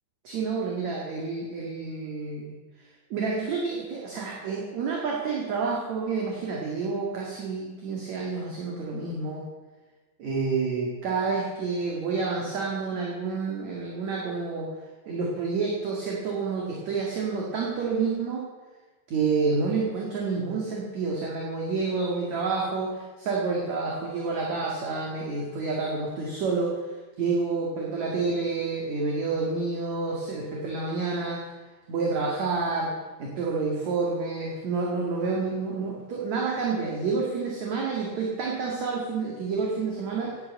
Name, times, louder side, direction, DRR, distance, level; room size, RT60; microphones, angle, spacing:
voice 1, 0.2-2.5 3.1-9.4 10.2-14.7 15.1-18.5 19.1-26.8 27.2-31.5 31.9-32.9 33.2-40.4, right 4 dB, 50° right, -2 dB, 3.0 m, -29 dB
16.5 x 11.0 x 7.6 m, 1.3 s
omnidirectional pair, 4.5 m